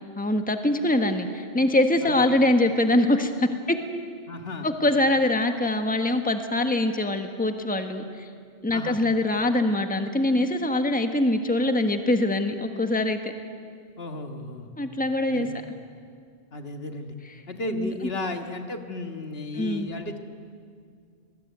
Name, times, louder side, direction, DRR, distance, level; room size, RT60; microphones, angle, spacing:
voice 1, 0.0-3.8 4.6-8.3 8.6-13.3 14.8-15.5 17.7-17.9 19.6-19.9, left 1 dB, 10° left, 6 dB, 1.4 m, -23 dB
voice 2, 4.3-4.7 8.7-9.0 14.0-14.7 15.3-15.6 16.5-17.2 17.5-20.2, left 2 dB, 65° left, 6 dB, 1.8 m, -34 dB
26.5 x 20.0 x 9.3 m, 2.2 s
omnidirectional pair, 1.1 m